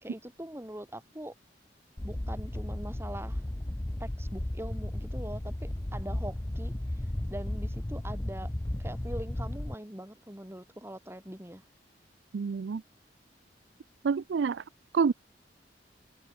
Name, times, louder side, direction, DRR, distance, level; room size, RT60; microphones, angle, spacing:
voice 1, 0.0-1.3 2.0-3.4 4.0-8.5 8.8-11.6, right 1 dB, 15° right, 3.2 m, -42 dB
sound 1, 2.0-9.8, left 1 dB, 15° left, 0.5 m, -34 dB
voice 2, 12.3-12.8 14.0-14.6 14.9-15.1, right 5 dB, 80° right, 0.4 m, -27 dB
head